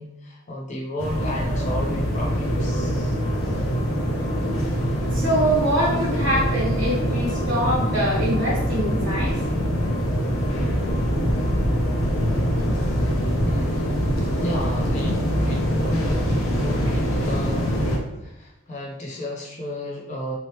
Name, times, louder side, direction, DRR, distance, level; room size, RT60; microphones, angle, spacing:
voice 1, 0.0-3.2 13.4-16.3 16.6-17.8 18.2-20.4, equal, 35° left, -2 dB, 0.5 m, -33 dB
sound 1, 1.0-18.0, equal, 80° left, 0.6 m, -24 dB
voice 2, 5.1-9.4, right 1 dB, 60° right, -9 dB, 0.8 m, -24 dB
3.0 x 2.0 x 2.8 m, 0.88 s
head